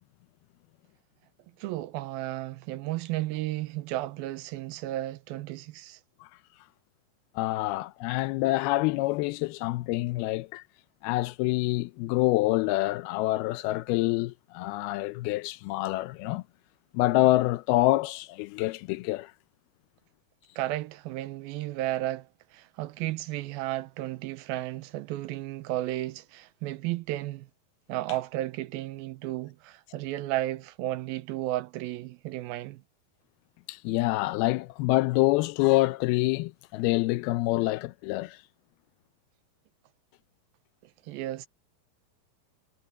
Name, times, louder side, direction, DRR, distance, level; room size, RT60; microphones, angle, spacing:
voice 1, 1.6-6.0 20.6-27.5 27.9-32.8 41.1-41.5, right 15 dB, 80° right, 2.5 m, -33 dB
voice 2, 7.4-10.6 11.0-16.4 16.9-19.3 33.7-38.4, left 19 dB, 85° left, 2.5 m, -26 dB
omnidirectional pair, 4.5 m